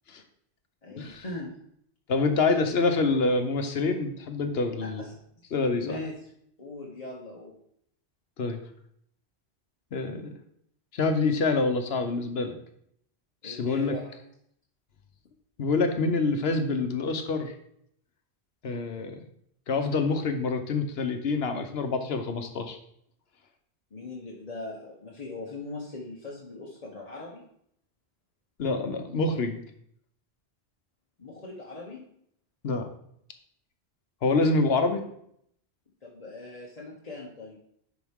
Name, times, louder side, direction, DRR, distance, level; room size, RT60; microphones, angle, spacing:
voice 1, 0.8-1.6 4.8-5.2 5.8-6.3 6.6-7.5 13.4-14.1 23.9-27.4 31.2-32.0 36.0-37.6, left 2 dB, 35° left, -4 dB, 1.1 m, -40 dB
voice 2, 2.1-5.1 5.5-6.0 8.4-8.6 9.9-10.3 10.9-12.6 13.4-13.9 15.6-17.5 18.6-19.2 19.7-22.8 28.6-29.6 32.6-32.9 34.2-35.0, left 3 dB, 65° left, 7 dB, 1.1 m, -26 dB
11.0 x 4.6 x 3.6 m, 0.70 s
omnidirectional pair, 1.1 m